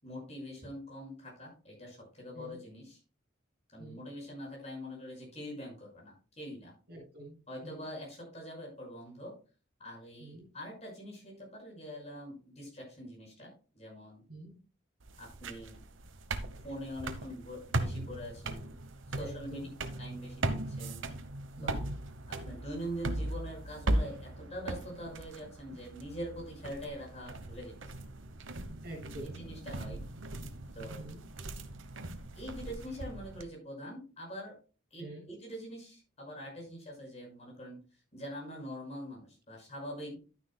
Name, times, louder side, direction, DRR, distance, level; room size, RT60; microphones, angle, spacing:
voice 1, 0.0-3.0 3.7-6.7 7.5-9.3 9.8-14.2 15.2-15.8 16.6-18.7 19.1-21.0 21.6-21.9 22.4-28.0 29.2-30.0 30.7-31.1 32.4-34.6 34.9-37.8 38.1-40.1, equal, 35° left, -2 dB, 5.7 m, -44 dB
voice 2, 6.9-7.4 7.6-7.8 10.2-10.5 14.3-14.6 19.2-19.7 21.6-21.9 28.8-29.4 31.0-31.2 35.0-35.3, right 2 dB, 55° right, -7 dB, 5.6 m, -46 dB
sound 1, 15.0-33.4, right 2 dB, 75° right, 1.0 m, -38 dB
11.5 x 9.7 x 2.2 m, 0.36 s
head